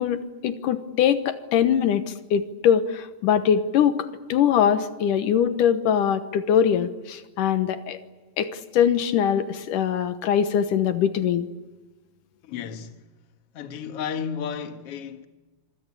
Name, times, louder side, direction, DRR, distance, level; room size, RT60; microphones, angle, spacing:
voice 1, 0.0-8.0 8.4-11.5, left 8 dB, 85° left, 2.8 m, -22 dB
voice 2, 12.4-13.0 13.5-15.3, left 7 dB, 55° left, 2.3 m, -33 dB
26.5 x 24.5 x 8.5 m
omnidirectional pair, 3.6 m